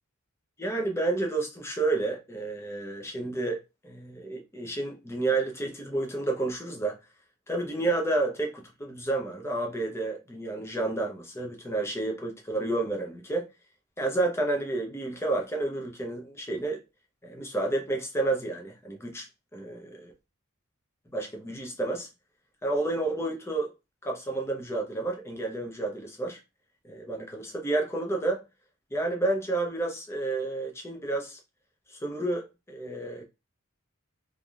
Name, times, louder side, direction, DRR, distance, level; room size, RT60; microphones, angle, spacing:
voice 1, 0.6-7.0 7.5-13.5 14.0-16.8 17.2-19.3 19.5-20.1 21.1-22.1 22.6-23.7 24.0-26.4 26.8-28.4 28.9-31.4 31.9-33.2, right 2 dB, 15° left, 0.6 m, -30 dB
3.3 x 2.6 x 2.3 m
head